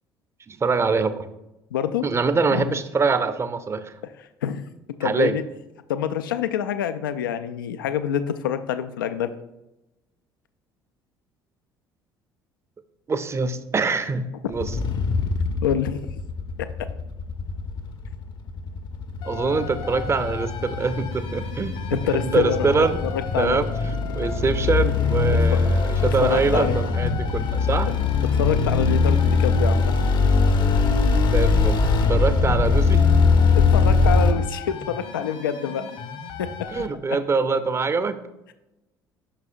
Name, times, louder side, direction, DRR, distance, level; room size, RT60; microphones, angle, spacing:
voice 1, 0.5-1.3 2.0-3.9 5.0-5.4 13.1-14.8 19.2-23.0 23.4-27.9 31.3-31.8 32.1-33.1 36.7-38.2, right 4 dB, 25° right, 12 dB, 0.6 m, -24 dB
voice 2, 1.7-2.1 2.5-2.7 4.4-4.6 5.0-5.4 5.9-9.3 15.6-16.1 21.9-23.6 25.5-25.6 26.2-26.8 28.4-29.9 33.5-35.9 36.4-36.5, left 9 dB, 75° left, 11 dB, 0.4 m, -26 dB
sound 1, 14.5-34.3, left 4 dB, 40° left, 0.7 m, -21 dB
sound 2, 19.2-36.9, left 5 dB, 60° left, 1.2 m, -37 dB
8.6 x 6.1 x 2.6 m, 0.95 s
figure-of-eight pair, 55°, 11 cm